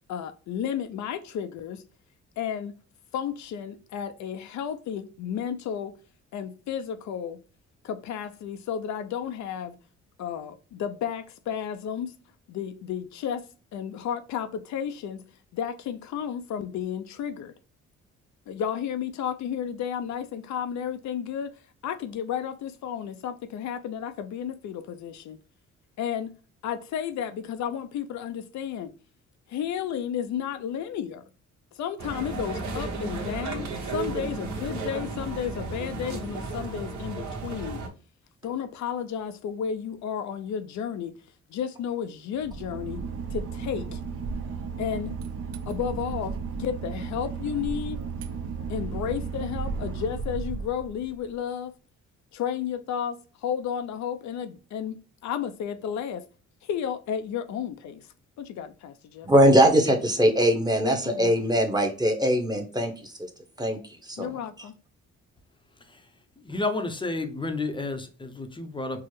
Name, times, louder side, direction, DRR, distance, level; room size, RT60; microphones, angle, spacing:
voice 1, 0.1-1.8 2.4-2.7 3.1-5.9 6.3-7.4 7.8-9.8 10.2-12.1 12.5-13.4 13.7-15.2 15.5-17.5 18.5-21.5 21.8-25.4 26.0-26.3 26.6-28.9 29.5-31.2 31.7-37.8 38.4-41.1 41.5-43.0 43.3-44.0 44.8-45.2 45.7-48.0 48.7-51.7 52.3-56.2 56.6-58.1 58.4-59.3 60.8-61.4 64.2-64.7, left 8 dB, 70° left, 0.5 m, -32 dB
sound 1, 32.0-37.9, right 3 dB, 70° right, 1.0 m, -34 dB
Boat Water vehicle / Engine, 42.3-51.3, right 5 dB, 50° right, 0.6 m, -34 dB
voice 2, 59.2-63.1 63.6-64.3, equal, 15° right, 0.9 m, -21 dB
voice 3, 66.5-69.0, left 2 dB, 15° left, 0.6 m, -30 dB
4.5 x 2.0 x 3.0 m
cardioid pair, 90°, 30 cm